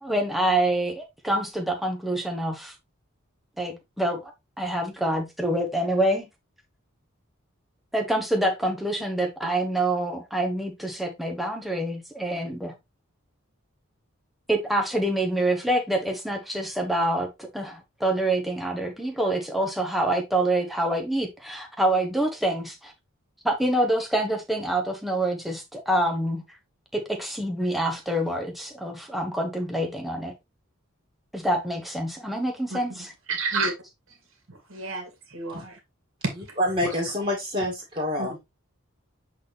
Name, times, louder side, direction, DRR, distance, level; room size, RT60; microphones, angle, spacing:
voice 1, 0.0-2.7 3.6-4.3 4.6-6.3 7.9-12.7 14.5-22.9 23.4-26.4 26.9-30.3 31.3-33.1, right 1 dB, ahead, 1.1 m, -26 dB
voice 2, 33.3-33.7 34.7-35.7 36.2-36.3 38.2-38.4, right 3 dB, 65° right, 2.3 m, -29 dB
voice 3, 36.3-38.4, left 1 dB, 30° right, 2.0 m, -27 dB
7.6 x 4.1 x 3.3 m
head